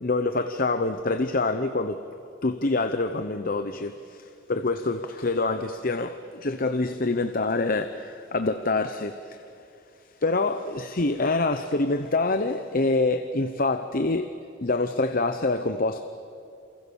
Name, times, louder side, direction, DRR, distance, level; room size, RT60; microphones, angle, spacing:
voice 1, 0.0-2.1 2.4-9.5 10.2-14.3 14.6-16.0, left 3 dB, 45° left, 0.9 m, -26 dB
28.5 x 28.0 x 7.1 m
head